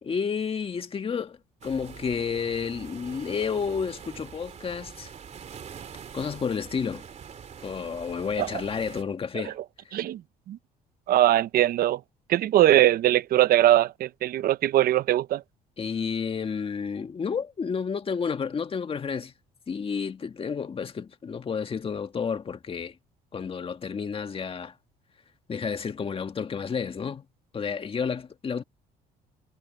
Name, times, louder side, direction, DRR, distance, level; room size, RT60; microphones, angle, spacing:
voice 1, 0.0-1.4 1.6-5.1 6.1-7.0 7.6-9.6 15.8-19.3 19.7-23.0 23.3-24.7 25.5-27.2 27.5-28.6, left 6 dB, 35° left, 1.8 m, -31 dB
sound 1, 1.6-9.0, right 7 dB, 45° right, 2.8 m, -44 dB
voice 2, 11.1-12.0 12.3-15.4, right 13 dB, 65° right, 0.8 m, -21 dB
cardioid pair, 100°, 17 cm